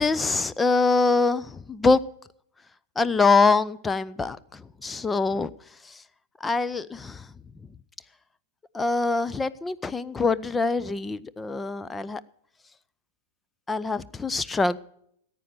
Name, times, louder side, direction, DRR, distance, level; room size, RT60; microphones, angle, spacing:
voice 1, 0.0-2.0 3.0-4.4 4.8-5.5 6.4-7.1 8.7-12.2 13.7-14.8, left 4 dB, 15° left, 0.6 m, -24 dB
14.5 x 9.0 x 6.5 m
figure-of-eight pair, 95°, 0 cm